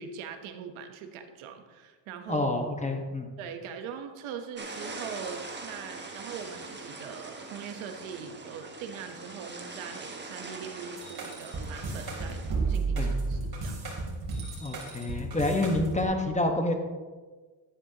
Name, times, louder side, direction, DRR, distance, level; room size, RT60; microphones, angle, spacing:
voice 1, 0.0-2.5 3.4-12.4 12.7-13.8, right 7 dB, 90° right, 7 dB, 1.1 m, -41 dB
voice 2, 2.3-3.3 12.9-13.1 14.6-16.7, left 2 dB, 15° left, 4 dB, 1.3 m, -28 dB
sound 1, 4.6-12.5, right 3 dB, 25° right, 1.4 m, -42 dB
sound 2, 11.0-16.1, right 4 dB, 50° right, 3.5 m, -32 dB
11.0 x 9.9 x 2.9 m, 1.4 s
cardioid pair, 90°, 47 cm